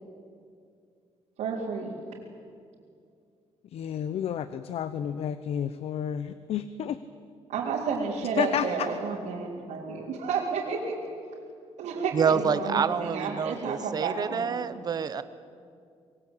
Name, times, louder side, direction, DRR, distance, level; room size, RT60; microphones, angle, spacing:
voice 1, 1.4-1.9 7.5-11.0 11.8-14.6, right 5 dB, 90° right, -7 dB, 4.2 m, -31 dB
voice 2, 3.7-7.0 8.4-8.9, left 9 dB, 60° left, 12 dB, 0.8 m, -31 dB
voice 3, 12.1-15.2, right 6 dB, 35° right, 13 dB, 1.0 m, -27 dB
25.5 x 22.0 x 8.4 m, 2.3 s
cardioid pair, 160°, 12 cm